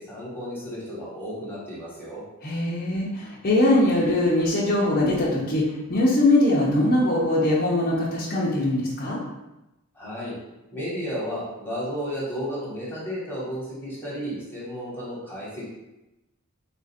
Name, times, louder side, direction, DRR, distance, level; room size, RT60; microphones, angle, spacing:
voice 1, 0.0-2.2 9.9-10.3 10.7-15.7, equal, 10° left, -8 dB, 1.3 m, -33 dB
voice 2, 2.4-9.2, left 1 dB, 40° left, -6 dB, 0.7 m, -22 dB
3.8 x 2.5 x 4.1 m, 0.95 s
head